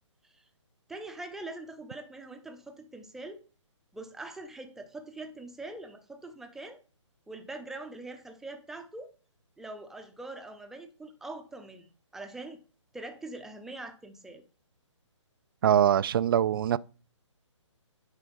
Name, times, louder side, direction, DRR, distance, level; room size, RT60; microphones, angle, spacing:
voice 1, 0.9-3.4 3.9-6.8 7.3-9.1 9.6-12.6 12.9-14.4, right 2 dB, ahead, 0.7 m, -43 dB
voice 2, 15.6-16.8, right 10 dB, 45° right, 0.4 m, -23 dB
9.8 x 4.1 x 5.3 m
hypercardioid pair, 145°, 16 cm